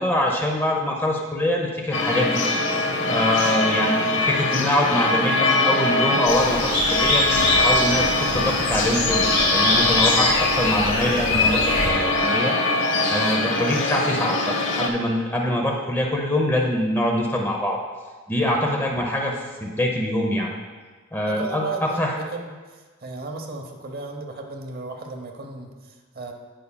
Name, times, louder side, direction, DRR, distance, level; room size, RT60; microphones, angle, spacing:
voice 1, 0.0-2.5 3.1-9.2 9.5-10.3 10.6-12.5 13.1-17.8 18.3-20.5 21.1-22.2, left 1 dB, 10° left, 0 dB, 0.7 m, -24 dB
sound 1, 1.9-14.9, left 2 dB, 55° left, 0.9 m, -23 dB
voice 2, 3.0-3.3 13.4-13.5 21.3-26.3, right 3 dB, 45° right, 3 dB, 0.8 m, -35 dB
sound 2, 6.3-11.9, left 2 dB, 80° left, 1.8 m, -23 dB
15.5 x 5.4 x 2.3 m, 1.4 s
head